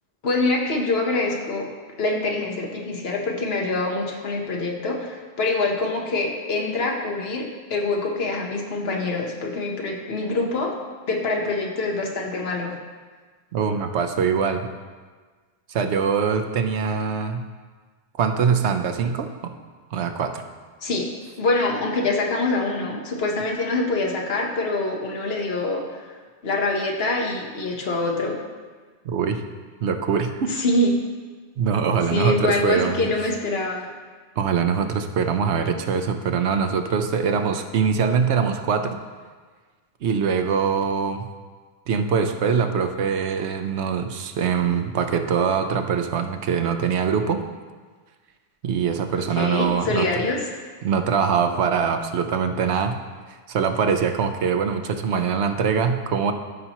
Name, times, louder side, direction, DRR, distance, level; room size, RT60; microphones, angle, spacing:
voice 1, 0.2-1.7 2.0-10.7 11.1-12.7 20.8-21.1 21.4-28.4 30.5-30.9 32.1-33.9 49.2-50.6, left 2 dB, 65° left, 0 dB, 1.3 m, -25 dB
voice 2, 13.5-14.7 15.7-17.4 18.2-19.5 19.9-20.4 29.0-29.4 29.8-30.6 31.6-33.1 34.4-39.0 40.0-41.3 41.9-47.4 48.6-50.1 50.8-53.0 53.5-56.3, right 6 dB, 80° right, 7 dB, 0.9 m, -23 dB
13.5 x 5.6 x 2.9 m, 1.4 s
omnidirectional pair, 1.1 m